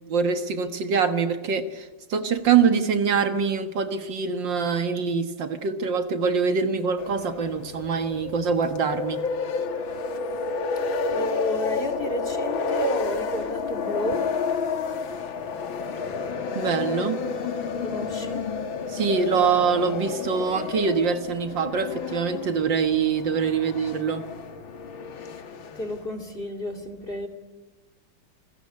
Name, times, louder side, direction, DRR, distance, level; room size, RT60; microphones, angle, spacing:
voice 1, 0.1-9.2 16.6-17.2 18.9-24.2, right 6 dB, 65° right, 9 dB, 2.2 m, -24 dB
sound 1, 7.0-26.1, left 5 dB, 75° left, 2.4 m, -30 dB
voice 2, 11.1-14.3 17.8-18.5 23.5-23.6 25.7-27.3, equal, 25° left, 5 dB, 2.9 m, -31 dB
28.0 x 21.5 x 9.7 m, 1.2 s
omnidirectional pair, 2.2 m